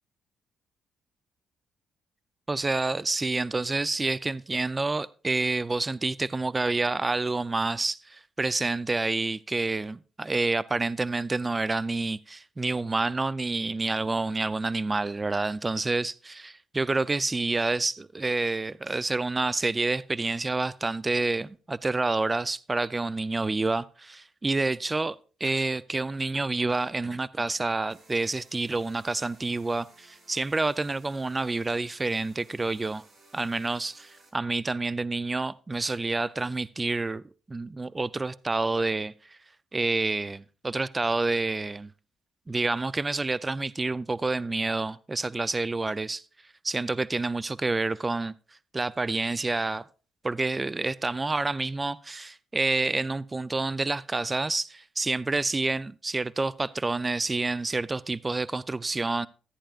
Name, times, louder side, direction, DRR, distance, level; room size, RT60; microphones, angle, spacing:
voice 1, 2.5-25.2 25.4-33.0 33.3-37.2 37.5-39.4 39.7-41.9 42.5-46.2 46.6-48.3 48.7-49.8 50.2-59.3, right 3 dB, 20° right, 0.4 m, -28 dB
sound 1, 27.9-34.3, right 2 dB, 50° right, 4.9 m, -58 dB
14.0 x 10.0 x 2.4 m
cardioid pair, 90°, 0 cm